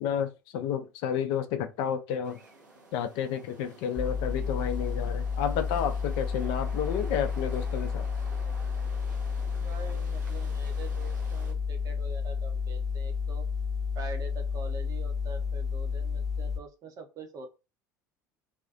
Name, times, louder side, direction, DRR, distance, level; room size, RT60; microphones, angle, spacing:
voice 1, 0.0-2.4 2.9-8.0, left 8 dB, 50° left, 0.4 m, -31 dB
sound 1, 2.2-11.5, right 2 dB, 75° right, 0.6 m, -50 dB
sound 2, 4.0-16.6, left 5 dB, ahead, 0.7 m, -31 dB
voice 2, 9.4-13.5 14.0-17.5, right 4 dB, 35° right, 0.7 m, -44 dB
2.7 x 2.3 x 2.3 m
figure-of-eight pair, 65°, 10 cm